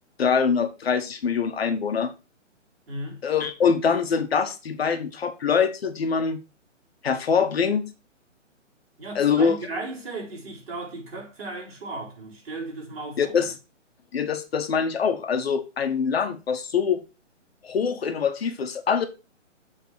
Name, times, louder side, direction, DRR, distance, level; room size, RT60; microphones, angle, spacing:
voice 1, 0.2-2.1 3.2-6.4 7.0-7.9 9.1-9.6 13.2-13.5 14.1-17.0 17.6-19.1, left 6 dB, 55° left, 1.1 m, -24 dB
voice 2, 2.9-3.2 9.0-13.4, right 2 dB, 50° right, 4.2 m, -36 dB
7.4 x 3.8 x 5.9 m
hypercardioid pair, 160°, 37 cm